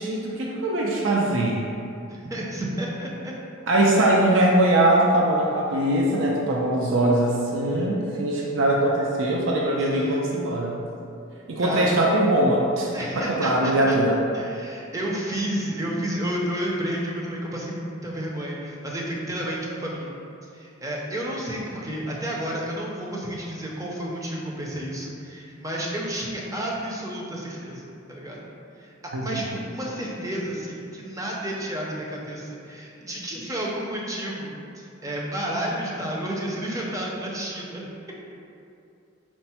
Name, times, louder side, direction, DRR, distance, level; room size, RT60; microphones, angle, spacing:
voice 1, 0.0-1.6 3.7-10.8 11.5-14.1 29.1-29.5, right 1 dB, 70° right, -2 dB, 0.4 m, -22 dB
voice 2, 2.1-3.3 9.8-10.3 11.6-11.9 12.9-14.0 14.3-20.1 20.5-28.4 28.8-28.9 29.2-37.9, right 1 dB, 15° right, -3 dB, 0.5 m, -31 dB
4.4 x 2.0 x 4.2 m, 2.6 s
head